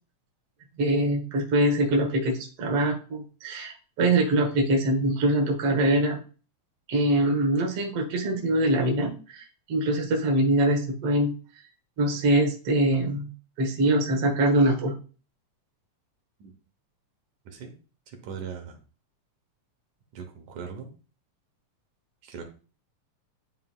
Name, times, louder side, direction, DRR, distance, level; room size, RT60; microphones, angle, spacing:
voice 1, 0.8-6.2 6.9-11.3 12.0-13.3 13.6-14.9, right 1 dB, 55° right, 2 dB, 1.8 m, -23 dB
voice 2, 18.1-18.8 20.1-20.9 22.2-22.4, right 6 dB, 75° right, 3 dB, 2.5 m, -39 dB
10.5 x 3.9 x 2.3 m, 0.36 s
omnidirectional pair, 3.6 m